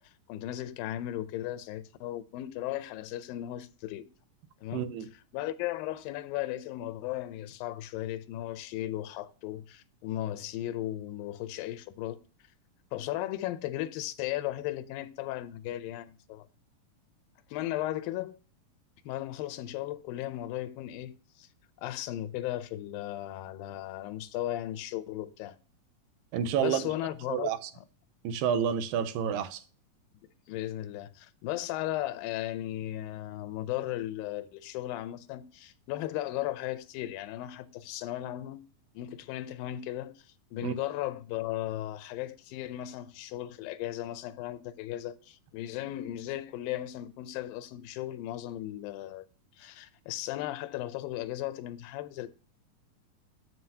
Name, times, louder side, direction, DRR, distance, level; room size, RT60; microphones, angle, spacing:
voice 1, 0.3-4.1 4.6-4.9 5.1-12.2 12.9-16.5 17.5-18.4 19.0-21.5 21.8-25.6 26.6-27.9 30.5-38.6 39.0-49.3 49.6-52.3, left 14 dB, 85° left, 2.3 m, -36 dB
voice 2, 4.7-5.1 26.3-26.8 27.3-27.7 28.2-29.6 40.6-40.7, right 8 dB, 85° right, 2.3 m, -29 dB
7.7 x 7.6 x 2.8 m
omnidirectional pair, 4.1 m